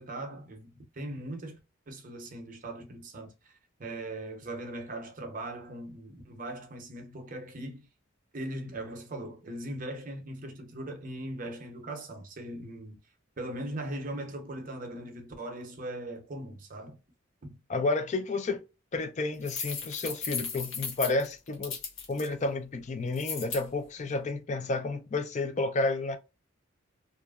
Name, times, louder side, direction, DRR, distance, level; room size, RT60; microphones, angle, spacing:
voice 1, 0.0-1.6 1.9-3.5 3.8-7.9 8.3-13.0 13.4-17.0 17.4-17.6, right 1 dB, 40° right, 0.6 m, -39 dB
voice 2, 17.7-18.6 18.9-21.8 22.1-26.2, left 3 dB, 35° left, 0.4 m, -31 dB
sound 1, 19.4-22.3 23.1-23.6, left 5 dB, 65° left, 0.8 m, -36 dB
2.8 x 2.4 x 2.3 m
head